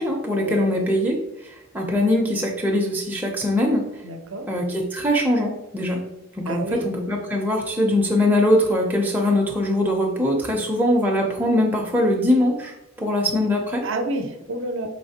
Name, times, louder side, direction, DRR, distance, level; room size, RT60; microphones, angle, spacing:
voice 1, 0.0-3.8 4.5-6.0 6.4-13.8, left 1 dB, 10° right, -1 dB, 0.5 m, -22 dB
voice 2, 4.0-4.5 6.5-6.8 13.8-14.9, right 2 dB, 60° right, 5 dB, 0.5 m, -29 dB
5.0 x 3.2 x 2.8 m, 0.85 s
head